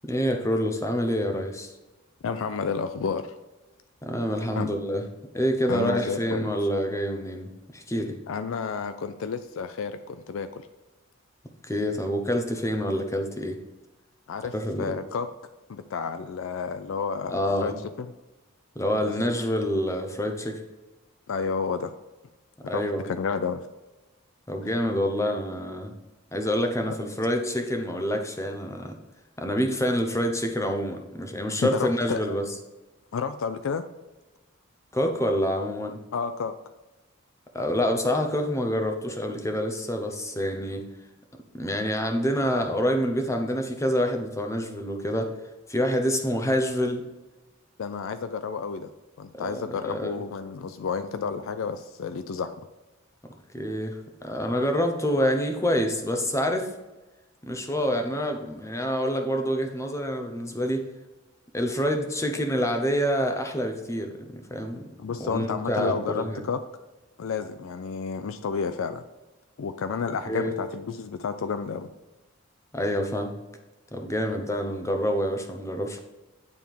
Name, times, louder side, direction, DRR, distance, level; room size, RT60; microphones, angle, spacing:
voice 1, 0.0-1.7 4.0-5.1 5.3-8.2 11.6-13.6 14.5-15.0 17.3-17.8 18.8-20.6 22.7-23.1 24.5-25.9 26.3-29.0 29.4-32.5 34.9-36.0 37.5-40.9 41.6-45.3 45.7-47.0 49.3-50.2 53.5-56.7 57.4-60.8 61.5-64.9 65.2-66.4 70.3-70.6 72.7-73.4 73.9-76.0, equal, 15° left, 4 dB, 0.7 m, -27 dB
voice 2, 2.2-3.3 4.6-4.7 5.7-6.5 8.3-10.6 14.3-15.3 15.7-17.7 18.0-18.1 21.3-21.9 22.7-23.6 31.6-32.3 33.1-33.8 36.1-36.5 47.8-48.9 49.2-52.5 65.0-66.6 67.2-69.0 69.6-71.9, left 5 dB, 75° left, 10 dB, 0.4 m, -31 dB
9.2 x 3.5 x 4.6 m, 1.1 s
head